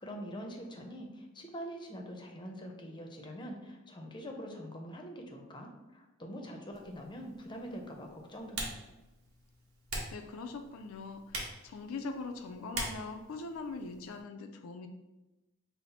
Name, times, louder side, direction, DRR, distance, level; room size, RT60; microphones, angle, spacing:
voice 1, 0.0-8.7, equal, 20° left, 2 dB, 0.6 m, -44 dB
Typing, 6.7-14.2, right 2 dB, 80° right, 1.0 m, -44 dB
voice 2, 10.1-14.9, left 3 dB, 70° left, 6 dB, 0.4 m, -42 dB
5.6 x 2.0 x 4.1 m, 1.0 s
head